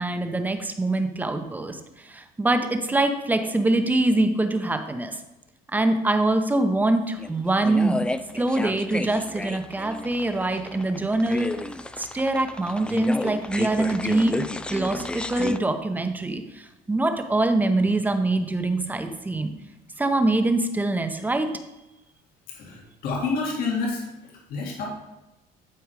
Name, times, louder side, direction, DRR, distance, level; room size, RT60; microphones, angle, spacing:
voice 1, 0.0-5.2 5.7-8.0 8.3-11.6 12.0-14.4 14.7-19.5 20.0-21.5, right 2 dB, 10° right, 7 dB, 0.8 m, -24 dB
sound 1, 7.2-15.6, left 2 dB, 5° left, 0.3 m, -32 dB
voice 2, 22.6-24.0 24.5-24.9, left 4 dB, 70° left, -2 dB, 2.2 m, -28 dB
11.5 x 4.7 x 4.8 m, 1.0 s
cardioid pair, 140°, 16 cm